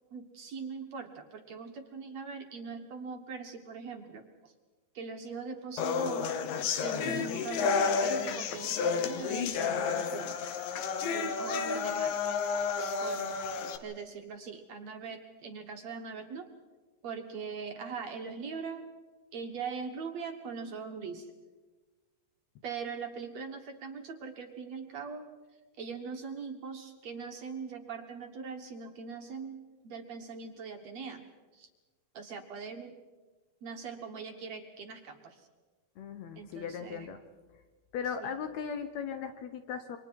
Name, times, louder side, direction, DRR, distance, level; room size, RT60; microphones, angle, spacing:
voice 1, 0.1-4.5 4.9-6.3 6.8-10.4 11.1-12.6 13.0-13.4 13.8-16.5 17.0-18.9 19.3-21.3 22.6-25.3 25.8-29.6 29.8-31.2 31.5-31.7 32.1-32.9 33.6-35.5 36.3-37.1 38.2-38.3, right 5 dB, 60° right, 4 dB, 1.9 m, -41 dB
sound 1, 5.8-13.8, left 5 dB, 70° left, 2.7 m, -31 dB
voice 2, 36.0-37.2 37.9-40.0, left 7 dB, 90° left, 9 dB, 1.5 m, -37 dB
29.0 x 25.0 x 4.6 m, 1.3 s
omnidirectional pair, 4.6 m